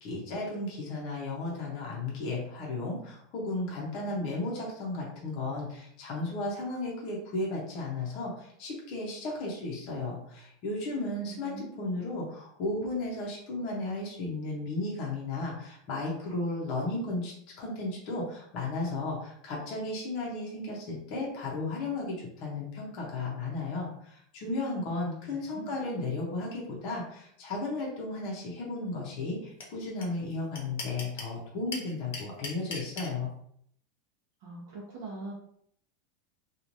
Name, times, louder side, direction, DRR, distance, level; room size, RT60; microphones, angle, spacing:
voice 1, 0.0-33.3, left 2 dB, 40° left, -4 dB, 0.7 m, -34 dB
voice 2, 11.2-11.9 25.3-25.7 34.4-35.3, right 3 dB, 45° right, -3 dB, 0.8 m, -43 dB
sound 1, 29.6-29.7 30.0-30.1 30.3-31.3 31.7-33.1, left 4 dB, 80° left, 0.9 m, -37 dB
3.0 x 2.4 x 2.6 m, 0.67 s
supercardioid pair, 175°, 0 cm